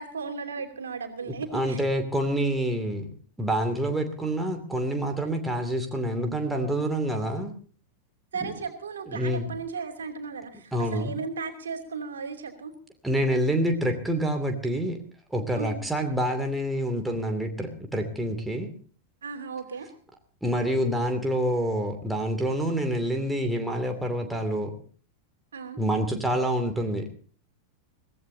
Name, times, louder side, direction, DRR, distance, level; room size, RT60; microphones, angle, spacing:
voice 1, 0.0-1.8 8.3-12.7 15.6-15.8 19.2-19.9 25.5-25.8, right 5 dB, 70° right, 3 dB, 2.9 m, -35 dB
voice 2, 1.3-7.5 8.4-8.5 9.1-9.5 10.7-11.1 13.0-15.0 15.3-18.7 20.4-24.7 25.8-27.1, right 1 dB, 5° right, 4 dB, 2.7 m, -27 dB
23.5 x 17.0 x 2.8 m, 0.42 s
figure-of-eight pair, 90°, 0 cm